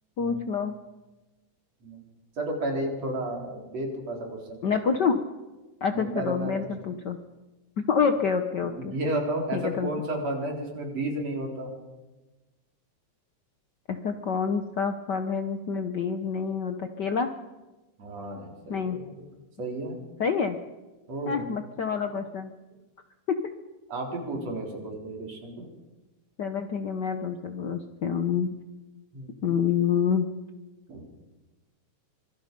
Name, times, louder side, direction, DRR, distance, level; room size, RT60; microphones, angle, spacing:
voice 1, 0.2-0.7 4.6-5.2 5.8-7.2 7.9-8.9 9.5-9.9 13.9-17.3 18.7-19.0 20.2-20.6 21.3-22.5 26.4-28.6 29.4-30.3, left 6 dB, 90° left, 7 dB, 0.9 m, -27 dB
voice 2, 2.4-4.6 5.9-6.7 8.8-11.7 18.0-19.1 19.6-20.0 21.1-21.4 23.9-25.7 29.1-29.4 30.9-31.0, right 1 dB, 55° right, 1 dB, 5.0 m, -32 dB
25.5 x 22.5 x 5.3 m, 1.1 s
omnidirectional pair, 3.5 m